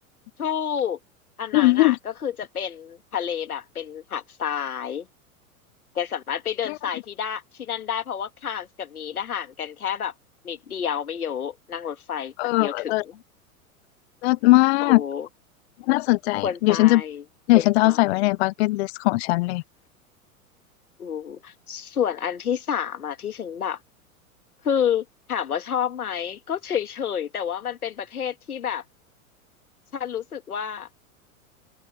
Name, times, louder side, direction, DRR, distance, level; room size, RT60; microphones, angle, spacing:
voice 1, 0.4-1.0 1.4-5.1 6.0-10.1 10.4-13.2 14.8-15.3 16.4-17.2 17.5-18.2 21.0-23.8 24.6-28.8 29.9-30.9, left 8 dB, 85° left, 1.9 m, -29 dB
voice 2, 1.5-2.0 6.7-6.8 12.4-13.0 14.2-15.0 15.9-17.0 17.5-19.6, left 20 dB, 50° left, 0.5 m, -19 dB
open air
hypercardioid pair, 100°, 43 cm